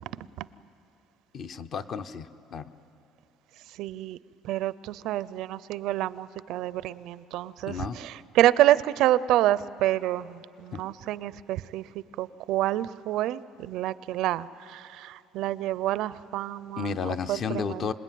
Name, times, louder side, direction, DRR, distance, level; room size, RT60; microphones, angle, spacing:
voice 1, 1.3-2.7 7.7-8.0 10.7-10.8 16.8-17.9, left 6 dB, 35° left, 12 dB, 0.7 m, -32 dB
voice 2, 3.8-4.2 4.4-11.8 12.2-16.9 17.3-17.8, right 14 dB, 60° right, 18 dB, 0.5 m, -27 dB
26.0 x 20.0 x 9.3 m, 2.8 s
cardioid pair, 170°, 0 cm